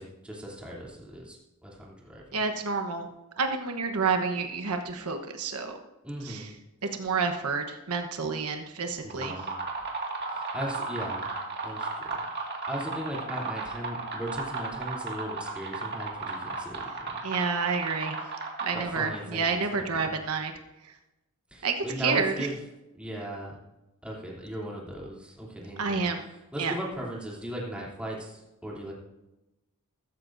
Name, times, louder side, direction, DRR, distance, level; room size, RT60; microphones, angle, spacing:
voice 1, 0.0-1.4 1.6-2.2 6.0-6.5 9.0-9.6 10.3-11.3 11.6-12.2 12.7-17.2 18.7-19.4 19.8-20.1 21.5-22.5 22.9-23.6 24.0-26.1 26.5-28.9, equal, 5° right, -4 dB, 3.0 m, -37 dB
voice 2, 2.3-3.1 3.4-5.8 6.2-6.5 7.0-9.4 17.2-18.2 18.6-20.5 21.6-22.5 25.8-26.2 26.6-26.7, right 4 dB, 80° right, 5 dB, 1.1 m, -29 dB
sound 1, 9.0-19.3, right 3 dB, 50° right, 2.1 m, -35 dB
15.0 x 14.0 x 2.7 m, 0.97 s
head